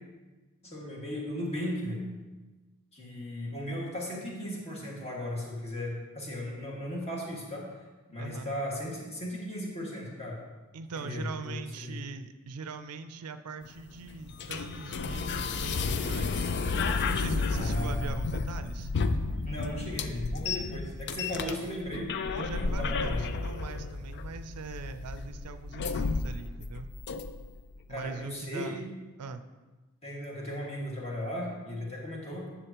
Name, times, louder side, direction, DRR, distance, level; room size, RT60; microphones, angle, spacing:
voice 1, 0.6-2.0 2.9-7.8 8.1-10.4 10.9-12.0 17.5-18.4 19.4-22.1 22.6-23.2 27.9-28.7 30.0-32.5, left 1 dB, 30° left, -4 dB, 1.9 m, -36 dB
voice 2, 8.2-8.5 10.7-16.5 17.0-19.0 21.4-21.7 22.3-26.9 27.9-28.9 29.2-29.4, right 4 dB, 90° right, 10 dB, 0.5 m, -41 dB
sound 1, 13.6-27.6, left 4 dB, 50° left, 0.4 m, -32 dB
9.9 x 7.2 x 2.9 m, 1.2 s
head